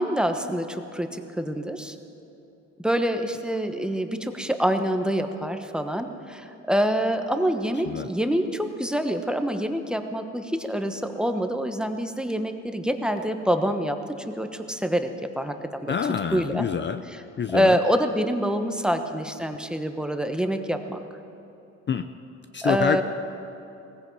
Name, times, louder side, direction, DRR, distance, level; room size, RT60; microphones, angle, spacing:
voice 1, 0.0-2.0 2.8-14.0 14.3-15.1 15.4-15.9 16.3-16.6 17.5-21.0 22.6-23.0, equal, 5° right, 6 dB, 1.0 m, -26 dB
voice 2, 15.9-17.0 17.4-17.8 21.9-22.1 22.5-23.0, left 7 dB, 40° left, 9 dB, 0.5 m, -26 dB
18.5 x 15.0 x 4.7 m, 2.8 s
cardioid pair, 90°, 30 cm